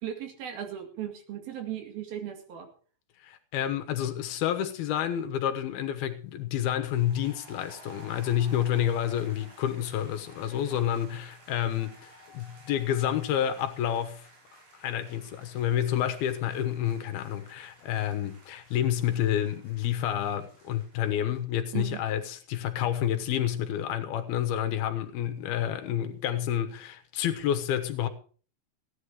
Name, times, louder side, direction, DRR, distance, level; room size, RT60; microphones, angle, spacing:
voice 1, 0.0-2.7 21.7-22.0, right 10 dB, 70° right, 4.0 m, -37 dB
voice 2, 3.2-14.2 14.8-28.1, left 10 dB, 75° left, 3.0 m, -29 dB
sound 1, 6.8-21.4, right 2 dB, 50° right, 4.9 m, -54 dB
16.5 x 10.5 x 4.9 m
omnidirectional pair, 4.6 m